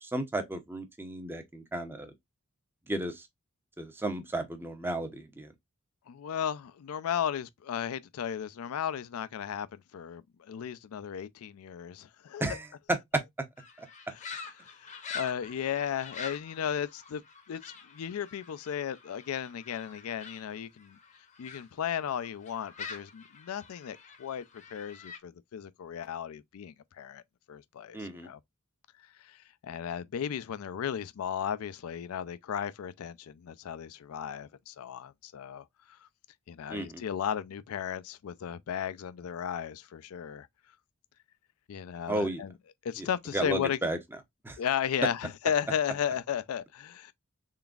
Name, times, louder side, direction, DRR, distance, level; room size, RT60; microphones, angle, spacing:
voice 1, 0.0-2.1 2.9-3.3 3.8-5.5 12.4-13.2 13.8-13.9 27.9-28.3 36.7-37.0 42.1-42.4 43.0-43.1 43.3-44.0 44.4-44.6, right 1 dB, 10° right, 0.6 m, -33 dB
voice 2, 6.1-12.6 14.6-17.2 17.5-21.0 21.4-24.4 24.7-27.2 27.5-28.4 29.2-36.1 36.5-40.5 41.7-42.5 42.8-43.8 44.6-47.1, left 8 dB, 85° left, 0.4 m, -35 dB
sound 1, 13.6-21.7 22.0-25.2, left 5 dB, 35° left, 0.7 m, -46 dB
3.8 x 3.4 x 2.3 m
head